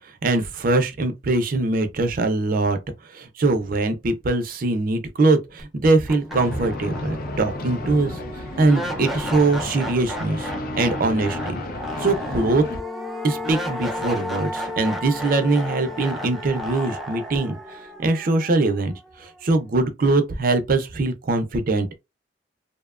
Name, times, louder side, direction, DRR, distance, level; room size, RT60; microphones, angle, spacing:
voice 1, 0.2-2.8 3.1-8.2 8.6-10.5 10.8-11.6 12.0-12.6 13.2-17.6 18.0-18.9 19.2-22.0, right 2 dB, 55° right, 0.5 m, -22 dB
sound 1, 5.6-5.7 6.1-19.1, left 1 dB, ahead, 0.5 m, -33 dB
sound 2, 6.3-12.8, left 2 dB, 55° left, 0.4 m, -33 dB
2.6 x 2.1 x 2.3 m
head